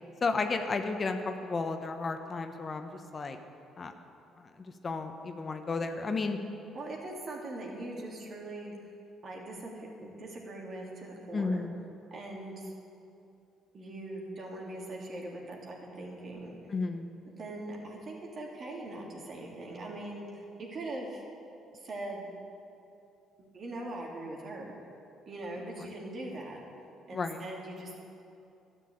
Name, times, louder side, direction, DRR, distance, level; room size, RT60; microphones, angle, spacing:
voice 1, 0.2-3.4 3.8-3.9 4.6-6.4 11.3-11.7 16.7-17.1 25.8-25.9 27.1-27.4, left 4 dB, 40° left, 6 dB, 1.1 m, -33 dB
voice 2, 6.7-8.7 9.2-11.6 12.1-12.7 13.7-16.6 17.2-21.2 21.8-22.3 23.4-24.8 25.2-26.6 27.1-28.0, right 2 dB, 50° right, -1 dB, 3.0 m, -41 dB
12.5 x 7.4 x 8.7 m, 2.7 s
supercardioid pair, 60°, 0 cm